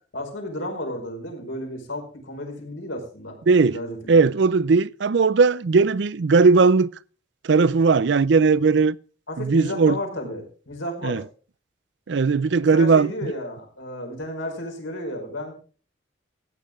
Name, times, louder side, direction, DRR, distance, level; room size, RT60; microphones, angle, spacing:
voice 1, 0.1-3.4 3.7-4.1 9.3-11.2 12.7-15.5, left 1 dB, 75° left, 4.9 m, -33 dB
voice 2, 3.5-3.8 4.1-6.9 7.4-9.0 9.4-10.0 11.0-11.2 12.1-13.1, right 4 dB, 60° right, 0.5 m, -18 dB
15.0 x 10.0 x 3.6 m
head